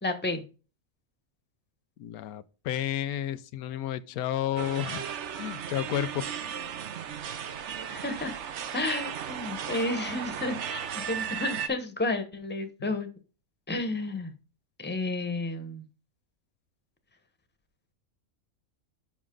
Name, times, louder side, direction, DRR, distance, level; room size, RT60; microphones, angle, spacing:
voice 1, 0.0-0.4 7.9-8.4 8.7-13.1 13.7-14.3 14.8-15.8, left 2 dB, 10° left, 1.0 m, -31 dB
voice 2, 2.0-5.0 5.4-6.2 12.8-12.9, left 11 dB, 90° left, 1.1 m, -31 dB
sound 1, 4.6-11.7, right 8 dB, 60° right, 0.9 m, -35 dB
7.3 x 6.1 x 3.8 m
omnidirectional pair, 1.5 m